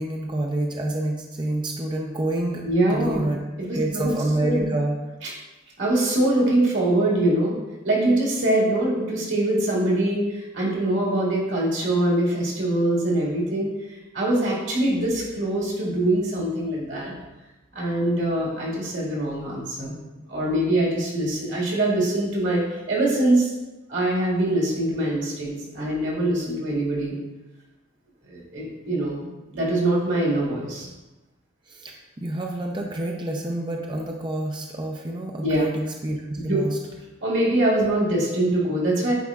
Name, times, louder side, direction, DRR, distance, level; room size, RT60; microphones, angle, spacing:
voice 1, 0.0-2.6 2.9-3.4 3.7-4.9 31.7-36.8, right 1 dB, 25° right, 0 dB, 0.5 m, -28 dB
voice 2, 2.6-3.3 3.6-4.1 4.4-4.7 5.2-5.3 5.8-7.6 7.8-17.1 17.7-20.0 20.3-23.5 23.9-27.1 28.3-29.2 29.5-30.9 35.4-35.7 36.5-36.6 37.2-39.1, right 1 dB, 85° right, -4 dB, 2.0 m, -23 dB
9.4 x 4.2 x 2.4 m, 1.1 s
head